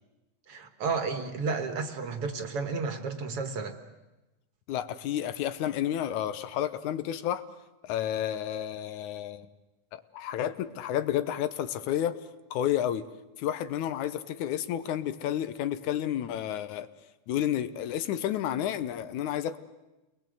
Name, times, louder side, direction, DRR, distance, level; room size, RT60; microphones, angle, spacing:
voice 1, 0.5-3.8, right 4 dB, 55° right, 7 dB, 2.3 m, -32 dB
voice 2, 4.7-7.4 7.8-9.5 9.9-12.2 12.5-13.1 13.4-16.9 17.3-19.6, left 11 dB, 90° left, 12 dB, 2.4 m, -31 dB
29.0 x 21.0 x 7.7 m, 1.0 s
omnidirectional pair, 3.3 m